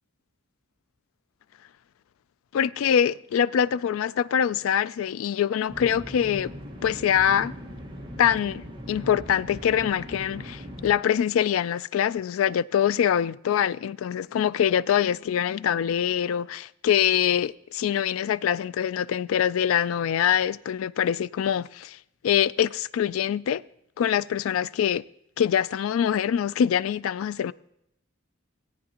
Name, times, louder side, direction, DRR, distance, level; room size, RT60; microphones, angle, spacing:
voice 1, 2.5-6.5 6.8-7.5 8.2-22.0 22.2-23.6 24.0-25.0 25.4-27.5, left 9 dB, 80° left, 0.3 m, -24 dB
sound 1, 5.7-10.9, equal, 25° right, 1.4 m, -40 dB
17.5 x 9.3 x 2.9 m
head